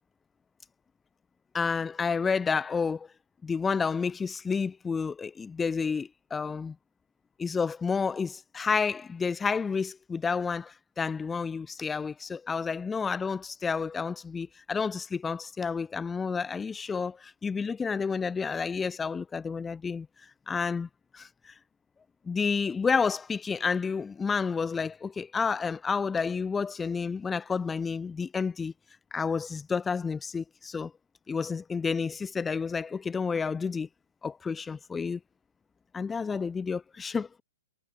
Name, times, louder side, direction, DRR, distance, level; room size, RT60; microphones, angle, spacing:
voice 1, 1.5-3.1 3.4-6.8 7.4-20.1 20.5-21.5 22.3-28.7 29.1-30.9 31.3-33.9 34.2-35.2 35.9-37.4, left 5 dB, 10° left, 0.8 m, -30 dB
hypercardioid pair, 165°, 0 cm